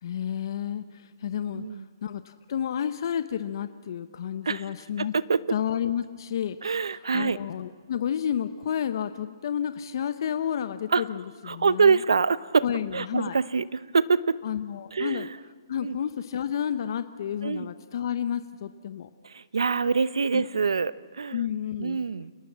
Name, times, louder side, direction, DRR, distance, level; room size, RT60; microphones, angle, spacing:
voice 1, 0.0-5.1 5.5-12.0 12.6-13.4 14.4-15.3 15.7-19.1 20.3-20.4 21.3-22.0, left 9 dB, 55° left, 11 dB, 0.9 m, -31 dB
voice 2, 1.5-1.8 4.4-4.7 5.0-5.4 6.6-7.4 10.9-11.0 11.5-12.6 12.9-14.4 14.9-15.3 15.8-16.0 17.4-17.7 19.2-21.4 21.8-22.3, right 5 dB, 85° right, 17 dB, 0.8 m, -25 dB
29.0 x 19.0 x 7.4 m, 1.5 s
hypercardioid pair, 145°, 3 cm